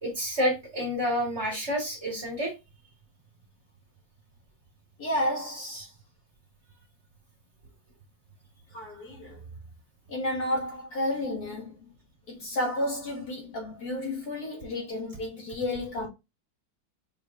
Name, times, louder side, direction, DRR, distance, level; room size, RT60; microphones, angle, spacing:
voice 1, 0.0-2.5, equal, 35° right, 1.9 m, -29 dB
voice 2, 5.0-5.9 8.7-9.4 10.1-11.9 12.3-16.1, left 1 dB, 55° left, 1.6 m, -32 dB
4.5 x 3.5 x 2.3 m
omnidirectional pair, 2.1 m